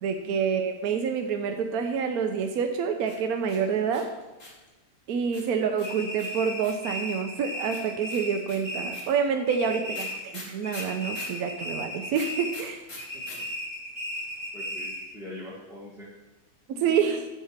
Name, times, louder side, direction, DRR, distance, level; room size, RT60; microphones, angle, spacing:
voice 1, 0.0-4.1 5.1-12.8 16.7-17.3, right 6 dB, 85° right, 5 dB, 1.2 m, -27 dB
sound 1, 3.0-4.7 5.3-6.9 7.7-11.4 12.1-13.4 13.6-13.7 13.9-14.4, left 2 dB, 60° left, 2.4 m, -44 dB
sound 2, 5.8-9.2 9.5-10.4 10.6-12.7 13.0-15.1, equal, 20° left, 3.8 m, -35 dB
voice 2, 9.6-10.1 13.1-13.5 14.5-16.1, left 1 dB, ahead, -7 dB, 1.5 m, -43 dB
8.2 x 4.9 x 7.2 m, 1.1 s
omnidirectional pair, 1.5 m